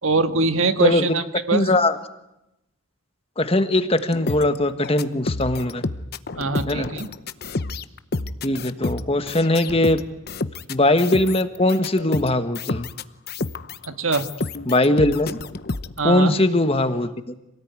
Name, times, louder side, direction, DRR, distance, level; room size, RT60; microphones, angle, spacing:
voice 1, 0.0-1.7 6.4-7.1 13.8-14.3 16.0-16.4, right 3 dB, 70° right, 8 dB, 1.8 m, -22 dB
voice 2, 1.5-1.9 3.4-5.8 6.7-6.9 8.4-10.0 10.7-12.9 14.7-15.4 16.0-17.1, left 1 dB, 25° left, 10 dB, 1.3 m, -20 dB
sound 1, 4.0-13.9 14.1-16.0, left 3 dB, 50° left, 0.8 m, -30 dB
27.0 x 18.0 x 9.6 m, 0.91 s
head